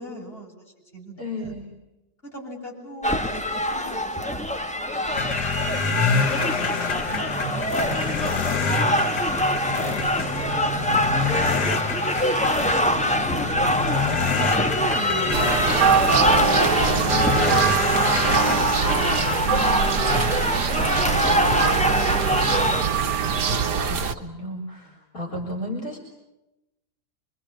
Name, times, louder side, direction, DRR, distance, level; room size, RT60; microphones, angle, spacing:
voice 1, 0.0-1.5 2.2-8.7 9.8-11.7 12.6-13.5 14.2-18.6, equal, 35° left, -1 dB, 7.9 m, -40 dB
voice 2, 1.2-1.6 19.4-20.1 23.5-26.0, left 1 dB, 60° left, 2 dB, 4.2 m, -34 dB
sound 1, 3.0-22.8, equal, 5° left, 1.1 m, -24 dB
sound 2, 5.1-19.4, left 5 dB, 80° left, 2.0 m, -27 dB
sound 3, 15.3-24.1, right 6 dB, 85° right, 1.9 m, -23 dB
25.5 x 24.5 x 8.8 m, 0.95 s
omnidirectional pair, 1.7 m